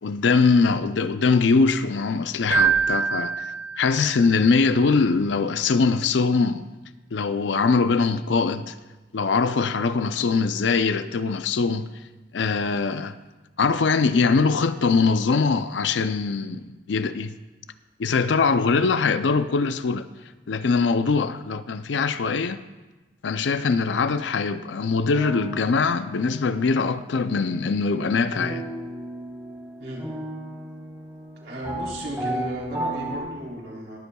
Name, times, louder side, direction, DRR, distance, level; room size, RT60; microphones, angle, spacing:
voice 1, 0.0-6.6 7.1-8.7 9.1-11.9 12.3-13.1 13.6-17.3 18.0-20.1 20.5-22.6 23.2-28.6, left 4 dB, 80° left, 0.5 m, -22 dB
Keyboard (musical), 2.5-4.3, right 6 dB, 60° right, 1.5 m, -24 dB
sound 1, 23.8-24.2 25.1-27.1 28.3-33.2, right 1 dB, 15° right, 2.8 m, -34 dB
voice 2, 31.4-34.0, equal, 80° right, 3.8 m, -34 dB
21.5 x 8.1 x 2.3 m
head